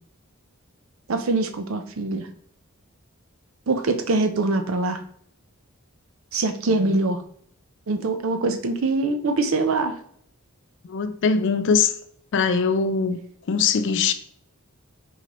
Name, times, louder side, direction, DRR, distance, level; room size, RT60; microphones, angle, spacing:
voice 1, 1.1-2.3 3.7-5.0 6.3-7.2 7.9-9.9, right 3 dB, 65° right, 7 dB, 0.6 m, -23 dB
voice 2, 10.9-11.9 12.3-13.2 13.5-14.1, left 5 dB, 55° left, 9 dB, 0.4 m, -21 dB
4.4 x 3.9 x 3.0 m, 0.63 s
head